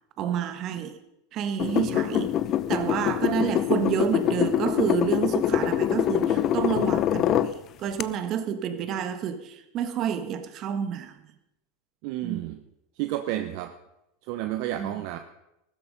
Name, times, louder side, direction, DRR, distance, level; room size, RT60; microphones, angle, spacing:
voice 1, 0.2-1.0 1.3-2.3 2.7-7.5 7.8-11.1 12.2-12.4 14.8-14.9, right 8 dB, 45° right, 1.7 m, -29 dB
sound 1, 1.6-7.5 8.0-8.1, left 11 dB, 40° left, 0.6 m, -24 dB
voice 2, 12.0-12.6 13.0-13.7 14.3-15.2, right 13 dB, 60° right, 0.9 m, -31 dB
15.0 x 13.0 x 5.3 m
supercardioid pair, 115°, 0 cm